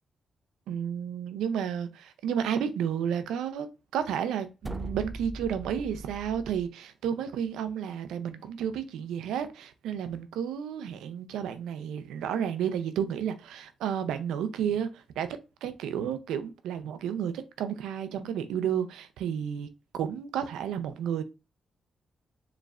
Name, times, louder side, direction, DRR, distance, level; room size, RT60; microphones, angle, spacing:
voice 1, 0.7-3.7 3.9-14.9 15.2-15.3 15.6-19.7 19.9-21.2, right 8 dB, 85° right, 0.5 m, -31 dB
sound 1, 4.6-6.7, right 2 dB, 20° right, 0.4 m, -39 dB
4.8 x 3.1 x 2.4 m
supercardioid pair, 55°, 0 cm